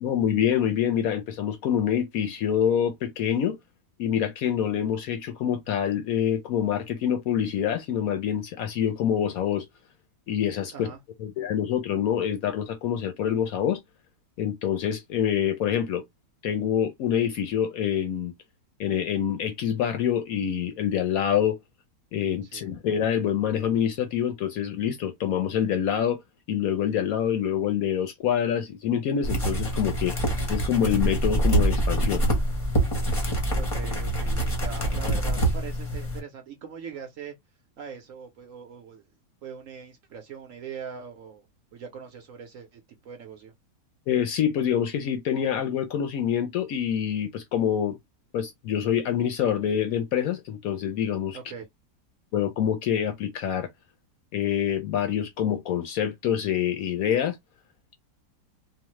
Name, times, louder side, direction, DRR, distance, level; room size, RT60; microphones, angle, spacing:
voice 1, 0.0-3.6 4.0-9.6 10.3-10.9 11.2-13.8 14.4-16.0 16.4-18.3 18.8-21.6 22.1-26.2 26.5-30.2 30.5-32.2 44.1-48.0 48.3-51.4 52.3-53.7 54.3-57.4, left 9 dB, 70° left, 0.9 m, -26 dB
sound 1, 29.2-36.2, right 1 dB, 30° left, 0.7 m, -25 dB
voice 2, 33.5-37.4 37.8-39.1 39.4-41.5 41.7-43.5 51.3-51.7, right 7 dB, 60° right, 0.9 m, -41 dB
3.1 x 2.1 x 2.9 m
omnidirectional pair, 1.8 m